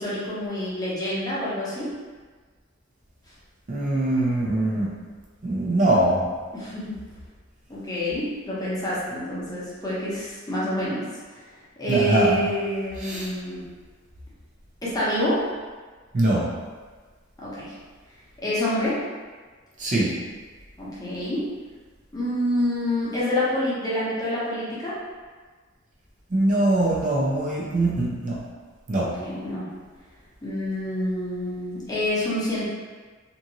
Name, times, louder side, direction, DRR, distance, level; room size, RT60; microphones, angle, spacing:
voice 1, 0.0-2.0 6.5-7.0 7.7-11.4 11.8-13.6 14.8-15.5 17.4-17.8 18.4-19.0 20.8-21.5 22.1-25.0 28.9-29.7 30.4-32.7, left 1 dB, 20° left, -9 dB, 0.7 m, -27 dB
voice 2, 3.7-4.9 5.4-6.3 11.9-12.5 13.0-13.3 16.1-16.5 19.8-20.1 26.3-28.4 28.9-29.1, right 1 dB, 40° right, -5 dB, 0.5 m, -22 dB
2.6 x 2.5 x 2.8 m, 1.4 s
head